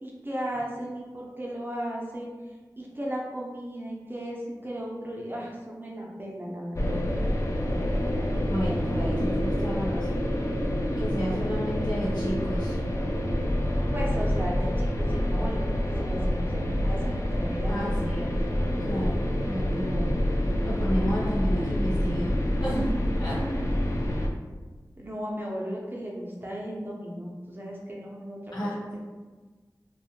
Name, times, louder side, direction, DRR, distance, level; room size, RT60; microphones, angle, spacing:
voice 1, 0.0-2.3 2.8-7.0 13.9-18.6 25.0-29.0, equal, 30° right, -3 dB, 0.5 m, -36 dB
sound 1, 6.8-24.3, equal, 45° left, 0.3 m, -27 dB
voice 2, 8.4-10.2 11.0-12.8 17.7-18.3 18.9-20.2 20.6-22.3 22.6-22.9 23.2-23.6 28.5-28.8, equal, 85° left, -9 dB, 1.1 m, -32 dB
2.6 x 2.1 x 2.9 m, 1.3 s
wide cardioid pair, 60°, 7 cm